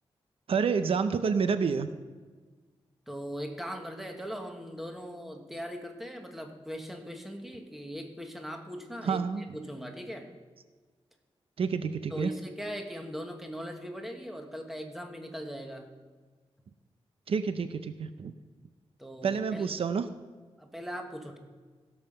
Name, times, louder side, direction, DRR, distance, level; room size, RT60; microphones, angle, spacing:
voice 1, 0.5-1.9 9.0-9.4 11.6-12.3 17.3-18.3 19.2-20.1, right 5 dB, 70° right, 10 dB, 0.6 m, -28 dB
voice 2, 3.1-10.3 12.1-15.9 19.0-19.7 20.6-21.4, equal, ahead, 3 dB, 1.3 m, -40 dB
16.5 x 5.6 x 6.7 m, 1.4 s
wide cardioid pair, 170°, 10 cm